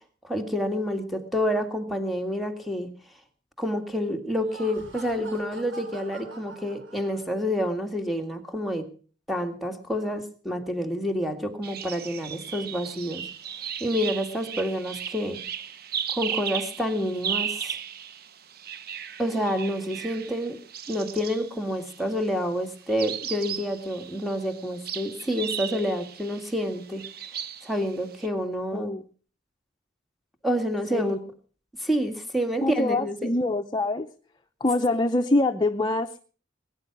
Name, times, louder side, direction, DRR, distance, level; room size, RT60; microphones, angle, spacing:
voice 1, 0.2-2.9 3.6-8.9 9.3-13.2 13.8-15.4 16.1-17.7 19.2-20.6 20.9-27.0 27.6-28.9 30.4-31.2 31.8-33.3, equal, ahead, 3 dB, 2.0 m, -28 dB
Laughter, 4.3-7.6, right 3 dB, 80° right, 4.8 m, -45 dB
sound 1, 11.6-22.2 22.9-28.3, right 9 dB, 50° right, 0.9 m, -36 dB
voice 2, 28.7-29.0 30.9-31.2 32.6-34.1 34.6-36.2, left 2 dB, 25° left, 6 dB, 0.7 m, -25 dB
20.5 x 10.0 x 6.0 m, 0.41 s
head